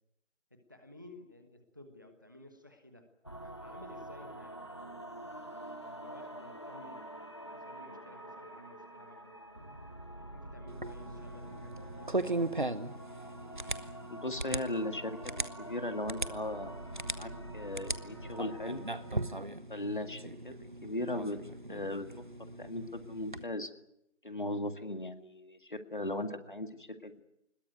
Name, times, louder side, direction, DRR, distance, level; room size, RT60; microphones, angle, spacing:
voice 1, 0.5-3.1 3.4-7.0 7.4-9.8 10.1-12.1, left 1 dB, 15° right, 6 dB, 1.3 m, -55 dB
sound 1, 3.2-19.4, right 1 dB, 20° left, 1.2 m, -47 dB
sound 2, 10.7-23.4, right 2 dB, 40° right, 1.1 m, -39 dB
voice 2, 14.1-16.7 17.2-18.8 19.7-21.4 21.7-23.7 24.2-27.2, left 1 dB, 40° left, 9 dB, 2.0 m, -38 dB
21.5 x 21.0 x 9.3 m, 0.80 s
figure-of-eight pair, 170°, 37 cm